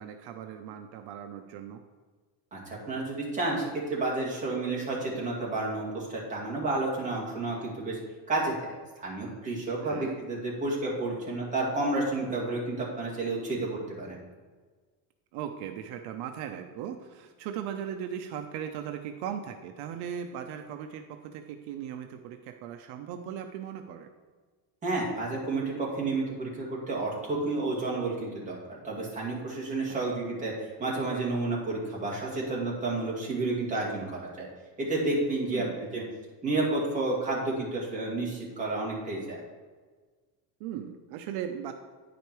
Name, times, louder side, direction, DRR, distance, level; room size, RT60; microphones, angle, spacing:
voice 1, 0.0-1.8 9.8-10.2 15.3-24.1 29.9-30.1 35.5-35.8 40.6-41.7, right 9 dB, 75° right, 6 dB, 0.7 m, -38 dB
voice 2, 2.5-8.0 8.3-14.2 24.8-34.5 34.8-35.6 35.9-36.0 36.4-39.4, right 2 dB, 20° right, -4 dB, 2.0 m, -31 dB
9.5 x 5.1 x 4.5 m, 1.4 s
cardioid pair, 165°, 39 cm